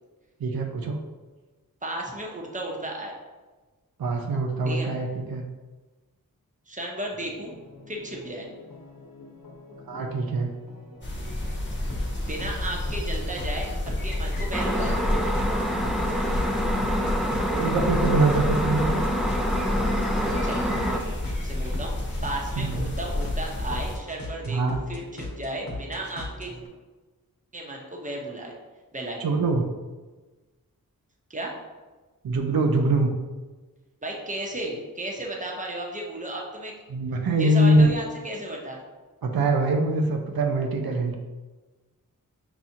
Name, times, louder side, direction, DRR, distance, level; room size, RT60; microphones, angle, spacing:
voice 1, 0.4-1.0 4.0-5.4 9.9-10.5 17.5-19.0 22.6-22.9 24.5-24.8 29.2-29.6 32.2-33.1 36.9-37.9 39.2-41.1, right 2 dB, 90° right, 3 dB, 0.5 m, -23 dB
voice 2, 1.8-3.2 4.6-4.9 6.7-7.5 7.9-8.5 12.2-13.7 14.0-15.0 20.4-21.0 21.4-21.9 22.2-26.5 27.5-28.5 28.9-29.2 31.3-31.5 34.0-36.7 37.4-38.8, right 1 dB, 20° right, -1 dB, 0.9 m, -34 dB
sound 1, 7.1-26.7, left 2 dB, 75° left, 1.0 m, -39 dB
sound 2, 11.0-24.0, left 1 dB, 30° left, 1.0 m, -30 dB
sound 3, 14.5-21.0, equal, ahead, 0.4 m, -27 dB
5.8 x 2.4 x 2.7 m, 1.2 s
wide cardioid pair, 50°, 35 cm